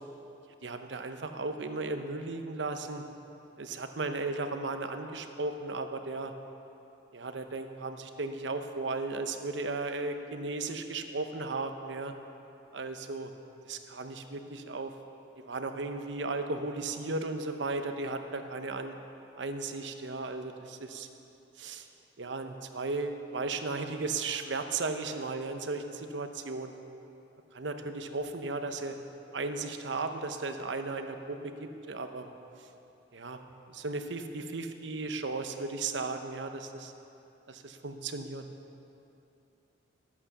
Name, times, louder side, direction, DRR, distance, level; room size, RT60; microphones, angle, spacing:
voice 1, 0.6-3.0 3.6-6.3 7.1-12.1 12.7-13.3 13.7-14.9 15.5-19.0 19.4-21.1 21.6-21.9 22.2-26.7 27.5-29.0 29.3-32.3 33.1-33.4 33.7-36.9 37.5-38.5, right 3 dB, 80° right, 7 dB, 0.8 m, -35 dB
12.0 x 8.6 x 6.6 m, 2.9 s
head